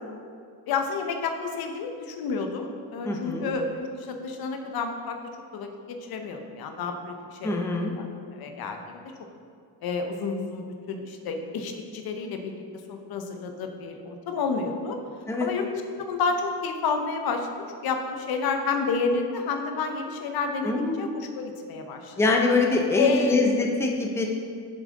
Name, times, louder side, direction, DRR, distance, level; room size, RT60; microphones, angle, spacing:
voice 1, 0.7-5.2 5.5-7.6 8.0-8.1 8.3-9.0 9.8-12.6 12.9-15.0 15.4-15.7 15.9-22.4 23.0-23.4, left 4 dB, 55° left, 5 dB, 0.8 m, -30 dB
voice 2, 3.0-3.5 7.4-7.9 15.3-15.5 20.6-21.1 22.2-24.2, left 3 dB, 5° left, 0 dB, 0.5 m, -24 dB
7.8 x 6.9 x 3.7 m, 2.3 s
cardioid pair, 175°, 44 cm